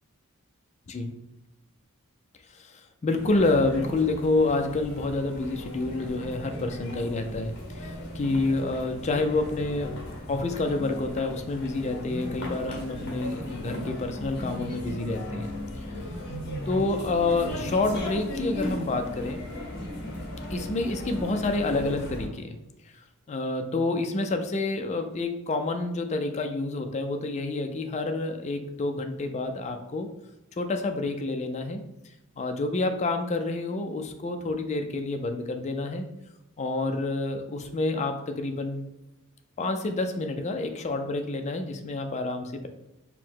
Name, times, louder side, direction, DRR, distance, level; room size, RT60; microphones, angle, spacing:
voice 1, 2.6-10.0 10.3-15.5 16.7-19.4 20.5-22.6 23.3-30.1 30.6-31.8 32.4-36.1 36.6-38.8 39.6-42.7, left 2 dB, 30° left, 6 dB, 0.4 m, -28 dB
sound 1, 3.1-22.3, left 1 dB, 50° left, 1.0 m, -36 dB
4.7 x 2.1 x 3.7 m, 0.95 s
head